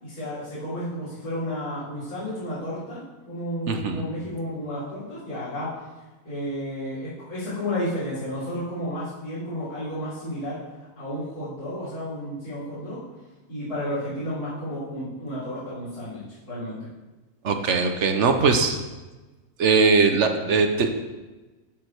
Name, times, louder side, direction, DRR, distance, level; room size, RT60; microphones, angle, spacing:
voice 1, 0.0-5.7 6.2-10.6 11.0-13.0 13.5-16.9, equal, 90° left, -12 dB, 3.7 m, -32 dB
voice 2, 3.7-4.0 17.4-18.8 19.6-20.9, right 4 dB, 55° right, 6 dB, 1.0 m, -20 dB
14.0 x 5.0 x 4.5 m, 1.2 s
omnidirectional pair, 1.6 m